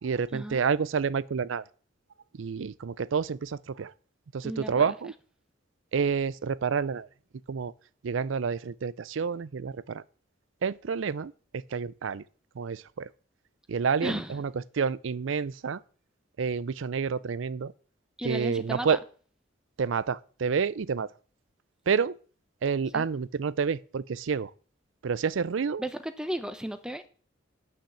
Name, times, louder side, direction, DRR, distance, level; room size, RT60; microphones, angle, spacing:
voice 1, 0.0-1.6 2.3-3.9 4.3-5.1 5.9-7.1 7.5-7.7 8.0-10.0 10.6-12.2 12.6-13.1 13.7-15.8 16.4-17.7 18.2-19.0 19.8-21.1 21.9-22.1 22.6-24.5 25.0-25.8, right 6 dB, 80° right, 0.5 m, -29 dB
voice 2, 4.4-4.9 14.0-14.4 18.2-19.0 22.9-23.1 25.8-27.1, right 1 dB, 5° right, 0.7 m, -34 dB
8.8 x 5.8 x 7.1 m
head